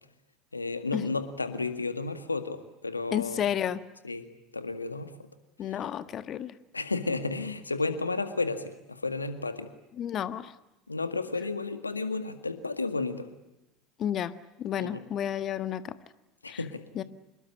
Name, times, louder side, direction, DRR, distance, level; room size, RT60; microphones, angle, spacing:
voice 1, 0.5-3.5 4.0-5.1 6.7-9.7 10.9-13.3 14.8-15.0 16.4-16.9, left 3 dB, 90° left, 10 dB, 1.9 m, -32 dB
voice 2, 3.1-3.8 5.6-6.6 10.0-10.5 14.0-14.3 14.6-16.0 16.5-16.6 16.9-17.0, left 10 dB, 40° left, 13 dB, 1.5 m, -31 dB
26.5 x 22.0 x 9.9 m, 0.94 s
figure-of-eight pair, 70°, 0 cm